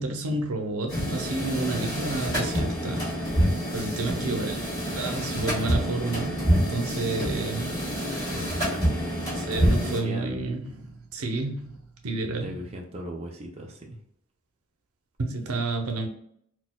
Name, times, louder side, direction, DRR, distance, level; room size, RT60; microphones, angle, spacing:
voice 1, 0.0-3.0 3.7-4.6 5.0-7.8 9.3-12.5 15.2-16.1, right 2 dB, 85° right, 4 dB, 0.6 m, -30 dB
sound 1, 0.9-10.0, equal, 15° left, 1.5 m, -27 dB
voice 2, 4.2-4.6 8.3-8.9 9.6-10.5 12.4-14.0, equal, 30° right, 1 dB, 0.4 m, -38 dB
4.0 x 2.2 x 2.2 m, 0.69 s
head